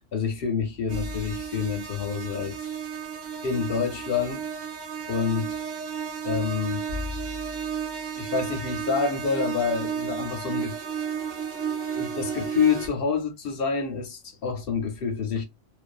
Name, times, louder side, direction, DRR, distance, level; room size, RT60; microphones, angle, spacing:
voice 1, 0.1-2.7 3.4-4.5 5.1-5.6 6.2-6.9 8.2-10.8 11.9-15.5, left 6 dB, 60° left, 0.7 m, -27 dB
sound 1, 0.9-12.9, right 6 dB, 45° right, 0.7 m, -33 dB
2.5 x 2.2 x 2.4 m
omnidirectional pair, 1.3 m